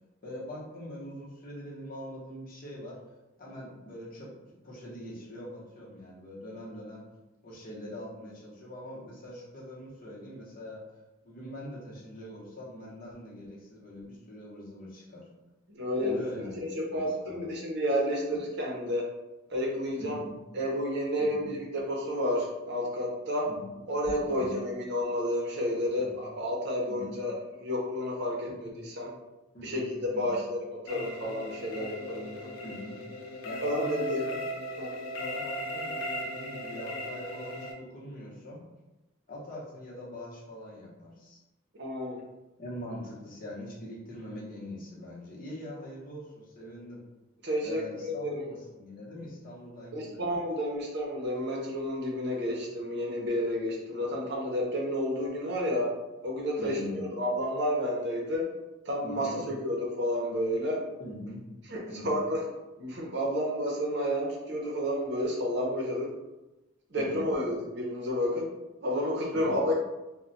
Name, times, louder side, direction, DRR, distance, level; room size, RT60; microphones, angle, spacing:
voice 1, 0.2-3.0 3.4-4.3 4.6-7.0 7.4-10.8 11.2-15.3 16.0-17.6 20.0-20.4 21.2-21.5 23.5-23.8 24.3-24.6 25.9-26.1 26.9-27.2 28.5-28.8 29.5-30.4 32.6-33.0 33.4-34.4 35.2-38.6 39.3-41.4 42.6-47.0 47.6-50.3 56.6-57.1 59.0-59.5 61.0-61.5 61.9-62.2 67.0-67.4 69.3-69.7, left 1 dB, 45° left, -5 dB, 0.9 m, -43 dB
voice 2, 15.7-19.1 19.5-20.2 20.5-23.5 23.9-29.1 29.6-30.6 30.9-32.5 33.6-34.2 34.8-34.9 41.8-42.2 47.4-48.4 49.9-55.9 56.2-58.4 58.9-60.8 61.7-62.4 62.8-66.1 66.9-68.5 68.8-69.7, equal, 55° right, -2 dB, 0.7 m, -31 dB
sound 1, 30.9-37.7, equal, 85° left, 0.4 m, -37 dB
2.3 x 2.1 x 3.8 m, 1.0 s
head